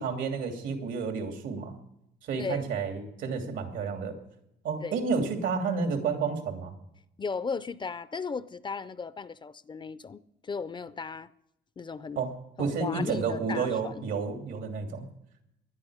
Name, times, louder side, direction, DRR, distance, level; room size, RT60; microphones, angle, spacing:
voice 1, 0.0-1.8 2.2-4.2 4.6-6.7 12.2-12.3 12.6-15.1, right 5 dB, 85° right, 2.8 m, -30 dB
voice 2, 7.2-11.3 11.8-12.2 12.6-14.0, left 5 dB, 25° left, 0.4 m, -36 dB
19.5 x 11.5 x 4.9 m
cardioid pair, 140°, 19 cm